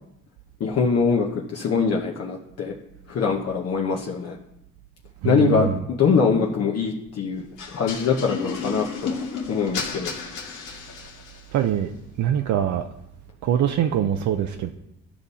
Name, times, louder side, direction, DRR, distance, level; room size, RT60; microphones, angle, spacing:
voice 1, 0.6-2.7 3.1-4.4 5.2-7.4 7.7-10.1, left 5 dB, 55° left, 1.0 m, -23 dB
voice 2, 5.2-5.8 11.5-11.9 12.2-12.9 13.4-14.7, right 10 dB, 70° right, 0.6 m, -23 dB
sound 1, 7.6-11.5, left 5 dB, 85° left, 1.4 m, -33 dB
11.5 x 5.4 x 4.2 m
cardioid pair, 90°, 30 cm